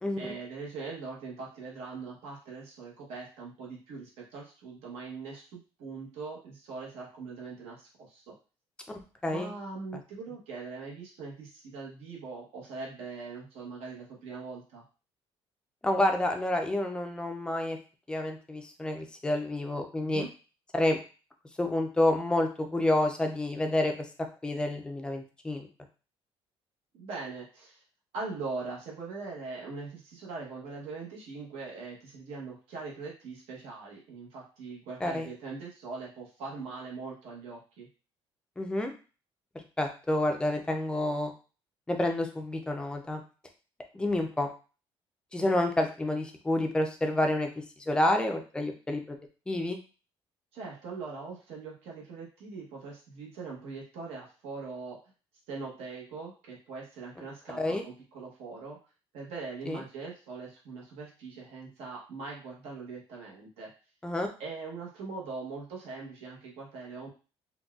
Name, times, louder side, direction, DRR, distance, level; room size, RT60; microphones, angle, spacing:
voice 1, 0.2-8.3 9.3-14.8 20.0-20.3 26.9-27.8 28.1-37.9 50.5-55.0 55.5-58.8 59.1-63.7 64.4-67.1, right 4 dB, 75° right, -3 dB, 1.0 m, -41 dB
voice 2, 15.8-17.8 18.1-20.2 20.7-21.0 21.6-23.9 24.4-25.7 35.0-35.3 38.6-38.9 39.8-41.3 41.9-43.2 43.9-44.5 45.3-47.5 47.8-49.2 49.5-49.8 57.5-57.8 59.7-59.8 64.0-64.3, left 1 dB, 10° left, 3 dB, 0.4 m, -29 dB
3.9 x 2.2 x 2.3 m, 0.34 s
cardioid pair, 170°, 10 cm